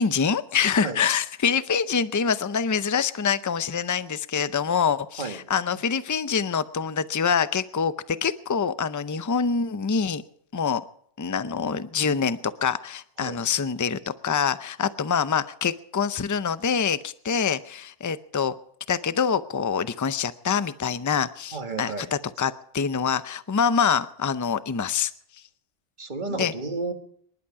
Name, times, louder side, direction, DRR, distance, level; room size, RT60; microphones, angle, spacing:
voice 1, 0.0-10.2 10.5-10.8 11.2-18.5 18.9-25.1 26.3-26.5, left 6 dB, 25° left, 13 dB, 0.4 m, -25 dB
voice 2, 21.5-22.1 26.0-26.9, right 3 dB, 40° right, 6 dB, 1.7 m, -32 dB
25.0 x 11.5 x 4.8 m, 0.65 s
omnidirectional pair, 1.2 m